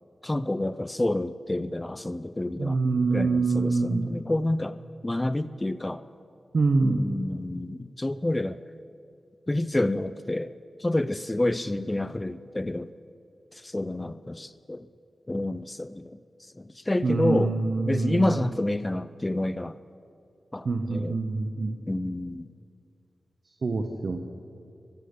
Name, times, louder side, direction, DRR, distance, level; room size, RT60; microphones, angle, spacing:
voice 1, 0.2-2.8 3.1-6.0 6.8-8.6 9.5-10.5 10.8-12.9 13.5-14.9 15.3-16.2 16.5-17.5 17.9-19.8 20.5-21.2 21.9-22.5, left 1 dB, 15° left, 14 dB, 0.3 m, -29 dB
voice 2, 2.6-4.1 6.5-7.0 17.0-18.3 20.6-21.7 23.6-24.2, right 3 dB, 60° right, 5 dB, 0.9 m, -25 dB
22.5 x 8.4 x 6.7 m, 2.4 s
wide cardioid pair, 125°, 0 cm